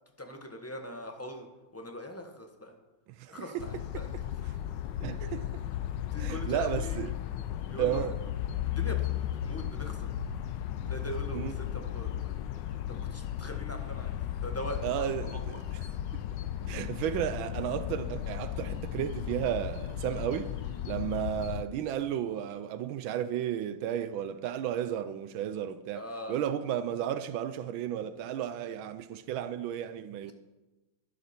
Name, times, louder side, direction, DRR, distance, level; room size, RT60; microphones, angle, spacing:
voice 1, 0.2-1.5 1.7-2.8 3.3-4.1 6.1-7.0 7.7-8.1 8.6-10.1 10.9-12.3 12.9-15.6 25.9-26.4, equal, 10° left, 0.8 m, -41 dB
voice 2, 3.2-3.7 5.0-5.5 6.2-7.1 7.8-8.1 11.3-11.5 14.8-15.6 16.1-16.2 16.7-20.5 20.8-30.3, right 10 dB, 75° right, 1.3 m, -33 dB
sound 1, 3.6-21.6, left 11 dB, 70° left, 1.2 m, -35 dB
12.0 x 12.0 x 4.3 m
omnidirectional pair, 2.4 m